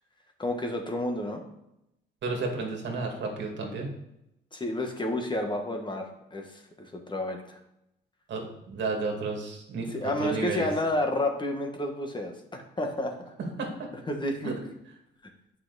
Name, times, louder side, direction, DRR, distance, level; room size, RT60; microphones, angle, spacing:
voice 1, 0.4-1.4 4.5-7.6 9.9-13.2 14.1-14.6, left 1 dB, 25° left, 3 dB, 1.3 m, -30 dB
voice 2, 2.2-3.9 8.3-10.7 13.6-13.7 14.4-14.5, right 4 dB, 65° right, 1 dB, 2.1 m, -32 dB
7.7 x 5.7 x 4.0 m, 0.84 s
cardioid pair, 90°, 20 cm